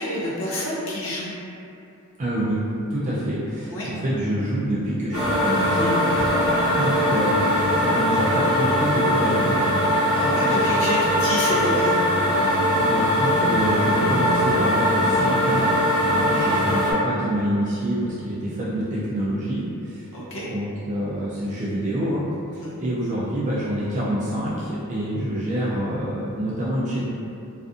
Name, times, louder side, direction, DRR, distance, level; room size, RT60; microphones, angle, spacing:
voice 1, 0.0-1.3 3.7-3.9 10.1-12.0 16.3-16.5 20.1-20.5 22.6-22.8, left 1 dB, 60° left, -7 dB, 0.6 m, -28 dB
voice 2, 2.2-2.6 2.9-9.7 12.5-15.7 16.0-20.1 20.3-22.2 22.5-27.0, equal, 35° right, -8 dB, 0.3 m, -27 dB
sound 1, 5.1-16.9, equal, 85° left, 1.1 m, -21 dB
2.4 x 2.4 x 2.3 m, 2.6 s
head